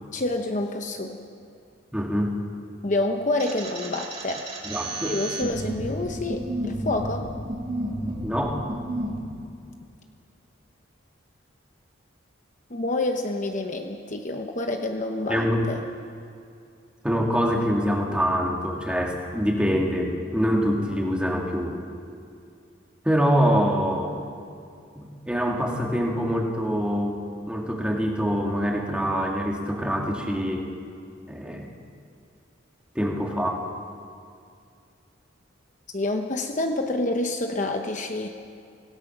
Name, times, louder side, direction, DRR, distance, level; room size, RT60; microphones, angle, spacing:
voice 1, 0.1-1.2 2.8-4.5 5.0-7.3 12.7-15.8 35.9-38.3, left 2 dB, 40° left, 4 dB, 0.9 m, -28 dB
voice 2, 1.9-2.3 4.6-5.2 8.2-8.6 15.3-15.6 17.0-21.8 23.0-24.1 25.0-30.7 31.3-31.7 32.9-33.6, equal, 5° right, -1 dB, 2.2 m, -25 dB
sound 1, 3.4-9.2, right 1 dB, 30° right, 2.9 m, -32 dB
25.0 x 17.5 x 6.0 m, 2.4 s
head